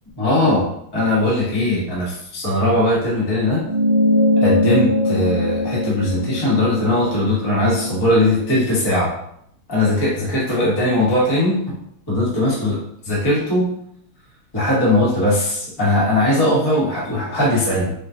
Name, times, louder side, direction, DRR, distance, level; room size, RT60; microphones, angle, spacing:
voice 1, 0.2-0.7 0.9-3.6 4.4-9.1 9.7-11.7 12.1-12.8 13.0-13.7 14.5-17.9, left 1 dB, 15° left, -7 dB, 0.9 m, -19 dB
sound 1, 3.7-8.5, left 1 dB, 70° right, 1.5 m, -21 dB
5.0 x 2.3 x 2.7 m, 0.72 s
omnidirectional pair, 2.3 m